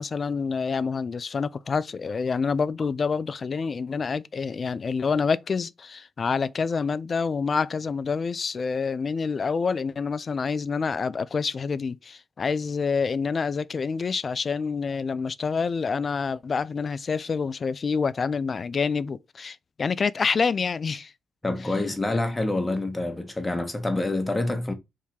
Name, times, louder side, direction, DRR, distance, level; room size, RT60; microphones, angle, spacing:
voice 1, 0.0-21.1 21.6-21.7 22.1-22.2, left 5 dB, 45° left, 0.3 m, -27 dB
voice 2, 21.4-24.7, left 2 dB, 20° left, 1.1 m, -27 dB
3.6 x 2.8 x 4.3 m
supercardioid pair, 50°, 0 cm